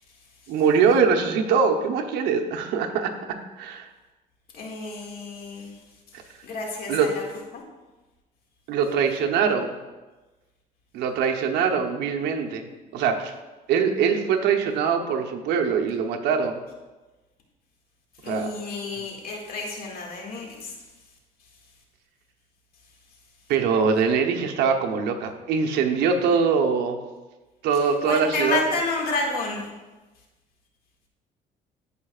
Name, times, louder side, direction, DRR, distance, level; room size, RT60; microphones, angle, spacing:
voice 1, 0.5-3.1 3.6-3.9 6.9-7.1 8.7-9.7 10.9-12.7 12.9-13.3 13.7-16.6 18.2-18.5 23.5-27.0 27.6-28.6, right 6 dB, 85° right, 3 dB, 0.9 m, -22 dB
voice 2, 4.5-5.8 6.4-7.2 7.5-7.6 18.2-20.8 27.7-29.7, left 3 dB, 60° left, -1 dB, 2.1 m, -30 dB
15.5 x 5.2 x 2.4 m, 1.2 s
cardioid pair, 110°, 17 cm